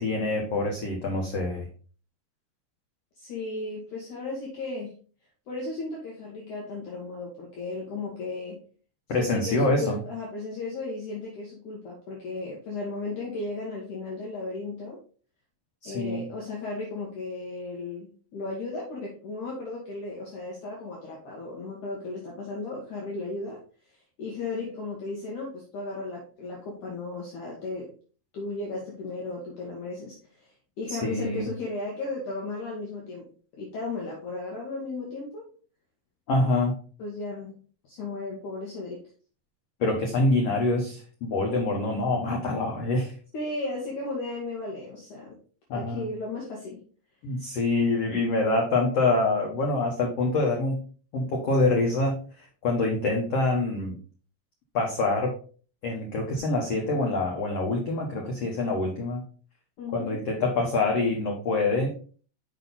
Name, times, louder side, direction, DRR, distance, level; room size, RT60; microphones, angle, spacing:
voice 1, 0.0-1.7 9.1-10.0 15.8-16.3 30.9-31.5 36.3-36.7 39.8-43.1 45.7-46.0 47.2-50.8 51.1-53.9 54.7-55.4 55.8-59.2 59.9-61.9, left 2 dB, 85° left, 0 dB, 1.4 m, -26 dB
voice 2, 3.2-5.0 5.5-8.6 9.1-15.0 15.8-23.6 23.9-27.9 28.3-33.3 33.6-35.5 37.0-37.6 37.8-39.0 43.3-45.4 45.7-46.8 59.8-60.2, left 3 dB, 60° left, -3 dB, 2.6 m, -35 dB
6.5 x 5.5 x 4.0 m, 0.40 s
omnidirectional pair, 4.6 m